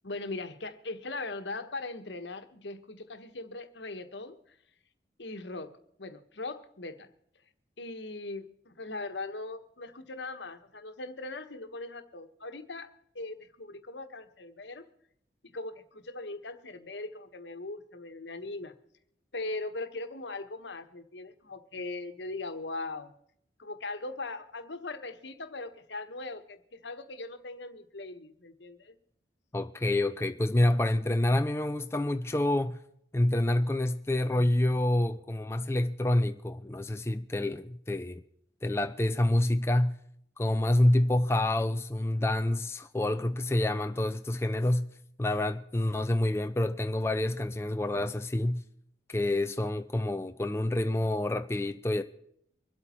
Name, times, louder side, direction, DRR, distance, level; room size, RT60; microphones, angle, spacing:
voice 1, 0.0-4.4 5.2-7.1 7.8-14.9 15.4-18.7 19.3-23.1 23.6-28.9, left 2 dB, 75° left, 1.3 m, -40 dB
voice 2, 29.5-32.8 33.1-38.2 38.6-39.9 40.4-44.9 45.2-48.6 49.1-52.0, left 1 dB, 15° left, 0.4 m, -27 dB
25.0 x 8.4 x 4.4 m
head